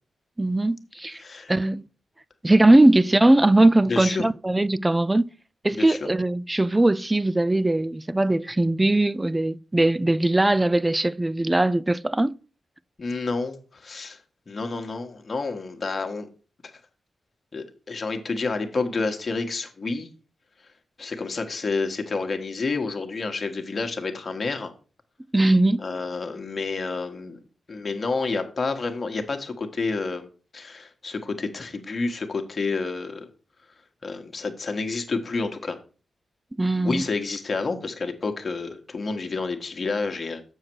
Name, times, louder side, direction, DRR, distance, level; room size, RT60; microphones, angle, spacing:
voice 1, 0.4-1.2 1.5-1.9 2.4-5.3 5.6-12.4 25.3-25.8 36.6-37.0, right 2 dB, 20° right, 0.4 m, -20 dB
voice 2, 1.2-1.5 3.9-4.2 5.7-6.1 13.0-14.2 14.5-16.3 17.5-20.1 21.0-24.7 25.8-27.4 27.7-33.3 34.0-35.8 36.8-40.4, left 3 dB, 50° left, 1.3 m, -29 dB
7.1 x 6.4 x 4.5 m
supercardioid pair, 45°, 0 cm